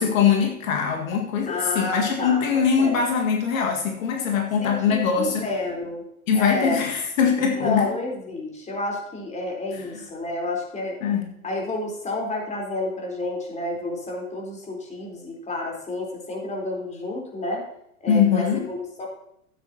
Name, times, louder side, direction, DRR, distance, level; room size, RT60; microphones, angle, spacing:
voice 1, 0.0-5.5 6.3-7.9 11.0-11.2 18.1-18.7, left 7 dB, 60° left, 2 dB, 1.9 m, -22 dB
voice 2, 1.5-3.0 4.6-6.0 6.3-6.8 7.5-11.0 11.4-17.6 18.0-19.1, left 2 dB, 15° left, -1 dB, 4.0 m, -30 dB
13.5 x 9.6 x 2.9 m, 0.74 s
hypercardioid pair, 105°, 44 cm